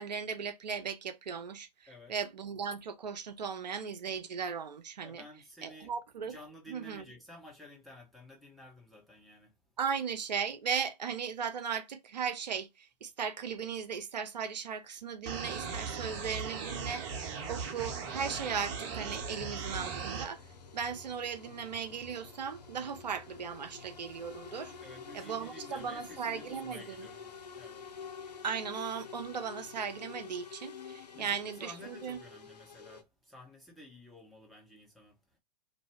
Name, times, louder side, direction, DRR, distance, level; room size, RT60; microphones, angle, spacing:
voice 1, 0.0-5.2 5.6-6.3 6.7-7.0 9.8-17.2 17.5-20.4 20.7-24.7 25.1-27.1 28.4-32.2, right 6 dB, 80° right, 0.5 m, -37 dB
voice 2, 5.0-5.9 6.3-9.5 24.8-27.8 31.1-35.1, left 1 dB, ahead, 0.9 m, -52 dB
sound 1, 15.3-20.3, right 5 dB, 45° right, 0.8 m, -38 dB
sound 2, 15.6-33.0, left 6 dB, 75° left, 0.6 m, -49 dB
2.5 x 2.1 x 3.3 m
figure-of-eight pair, 105°, 21 cm